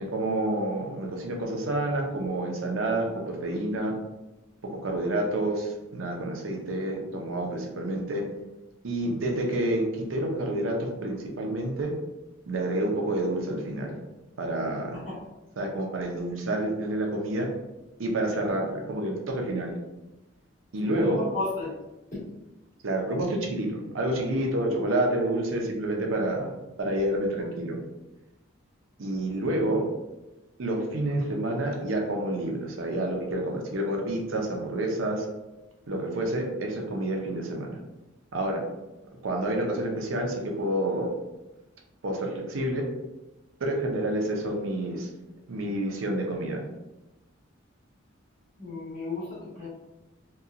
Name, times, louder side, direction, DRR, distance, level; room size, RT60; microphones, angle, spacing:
voice 1, 0.0-3.9 4.6-8.3 8.8-11.9 12.5-14.0 14.4-15.0 15.6-17.5 18.0-19.7 20.7-21.2 22.8-26.5 26.8-27.8 29.0-29.9 30.6-35.3 35.9-37.8 38.3-38.6 39.2-41.1 42.0-42.9 43.6-45.1 45.5-46.6, right 1 dB, 80° right, 1 dB, 0.6 m, -28 dB
voice 2, 20.8-21.7 48.6-49.7, left 2 dB, 35° left, -9 dB, 1.2 m, -33 dB
2.8 x 2.3 x 2.4 m, 1.0 s
head